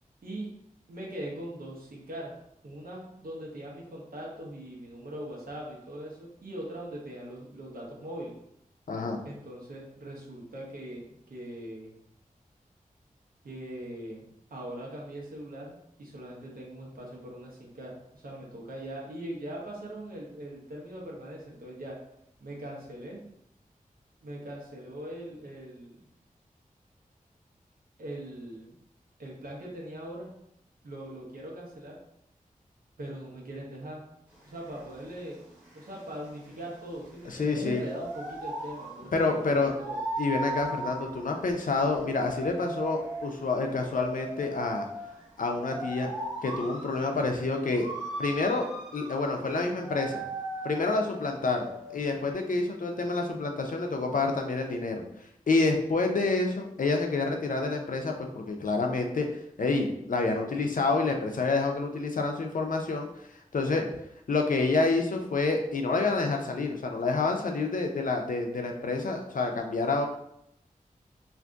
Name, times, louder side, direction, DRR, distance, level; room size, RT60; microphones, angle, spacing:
voice 1, 0.9-2.3 2.6-8.3 9.2-12.0 13.4-22.0 22.4-23.2 24.2-26.0 28.0-28.8 29.2-30.3 30.8-32.0 33.0-34.0 34.4-35.5 35.7-40.0, right 1 dB, 85° right, -3 dB, 0.9 m, -41 dB
voice 2, 8.9-9.2 37.3-37.8 39.1-39.7 40.2-44.9 45.4-46.1 46.4-47.9 48.2-50.2 50.6-55.0 55.5-59.3 59.6-63.1 63.5-63.9 64.3-70.1, left 3 dB, 70° left, 3 dB, 0.5 m, -28 dB
sound 1, 34.3-52.3, right 1 dB, 10° right, 1.2 m, -39 dB
2.5 x 2.5 x 3.4 m, 0.77 s
wide cardioid pair, 70°, 14 cm